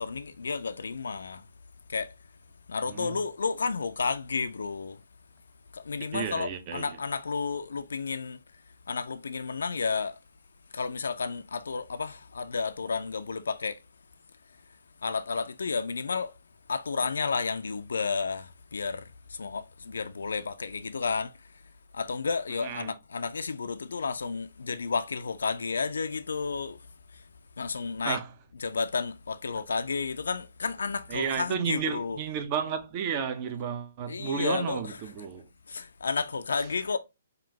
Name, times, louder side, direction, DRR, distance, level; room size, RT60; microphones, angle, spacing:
voice 1, 0.0-1.4 1.9-2.1 2.7-5.0 5.7-8.4 8.9-10.2 10.7-13.8 15.0-16.3 16.7-21.3 21.9-26.8 27.6-28.2 28.6-32.2 34.1-35.0 35.7-37.0, left 5 dB, 60° left, 0.3 m, -32 dB
voice 2, 2.9-3.2 6.1-6.9 22.6-22.9 28.0-28.3 31.1-35.5, right 7 dB, 30° right, 0.6 m, -32 dB
5.2 x 2.5 x 2.8 m
figure-of-eight pair, 125°, 0 cm